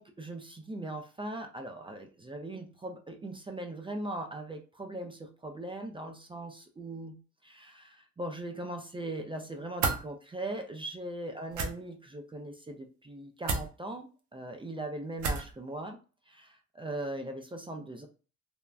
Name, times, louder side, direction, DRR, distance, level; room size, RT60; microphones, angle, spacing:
voice 1, 0.0-16.0 16.3-18.1, right 1 dB, 15° right, 4 dB, 0.4 m, -40 dB
sound 1, 9.8-10.0 11.5-11.7 13.4-13.7 15.2-15.5, right 4 dB, 75° right, 0.7 m, -30 dB
3.3 x 2.1 x 2.4 m, 0.36 s
cardioid pair, 90°, 30 cm